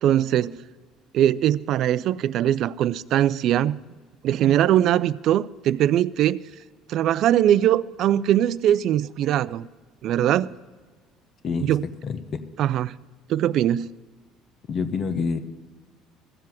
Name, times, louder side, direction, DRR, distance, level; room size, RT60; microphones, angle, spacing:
voice 1, 0.0-0.6 1.1-3.8 4.2-6.4 6.9-9.7 10.0-10.6 11.6-11.8 12.6-12.9 13.3-13.9, right 11 dB, 55° right, 0.4 m, -21 dB
voice 2, 12.0-12.4 14.7-15.4, left 5 dB, 45° left, 1.1 m, -27 dB
15.0 x 7.4 x 8.8 m
hypercardioid pair, 60°, 0 cm